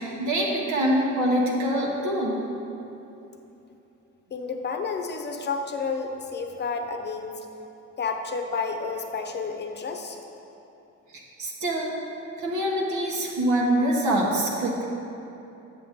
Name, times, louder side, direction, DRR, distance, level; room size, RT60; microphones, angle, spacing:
voice 1, 0.0-2.4 11.4-11.9 12.4-14.8, right 1 dB, 80° right, -3 dB, 1.2 m, -24 dB
voice 2, 4.3-7.5 8.0-10.2, left 4 dB, 35° left, 4 dB, 0.7 m, -30 dB
7.9 x 6.7 x 3.6 m, 2.9 s
cardioid pair, 90°, 30 cm